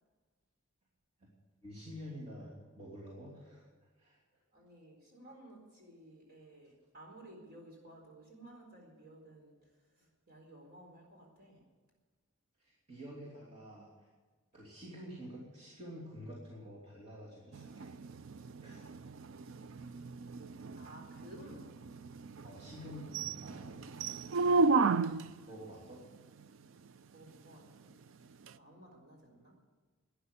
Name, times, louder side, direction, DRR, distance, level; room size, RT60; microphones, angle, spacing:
voice 1, 1.6-3.7 4.0-4.2 12.6-14.1 14.5-18.0 18.6-18.9 22.4-23.7 25.5-26.0, equal, 30° right, -6 dB, 2.9 m, -48 dB
voice 2, 4.5-11.7 19.6-20.0 20.3-21.7 23.9-24.5 27.1-27.9 28.5-29.6, right 1 dB, 45° right, 0 dB, 4.3 m, -56 dB
sound 1, 17.5-25.4 28.5-28.6, right 4 dB, 65° right, 0.4 m, -33 dB
12.5 x 10.0 x 9.6 m, 1.4 s
head